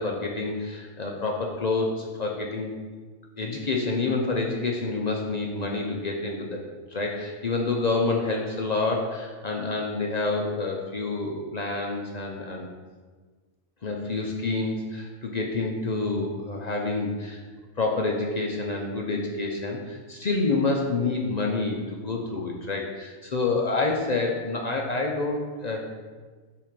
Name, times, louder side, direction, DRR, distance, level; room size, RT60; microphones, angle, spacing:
voice 1, 0.0-2.7 3.4-6.6 6.9-12.7 13.8-17.4 17.8-25.9, left 3 dB, 50° left, 0 dB, 0.5 m, -28 dB
5.7 x 3.6 x 5.1 m, 1.4 s
omnidirectional pair, 1.4 m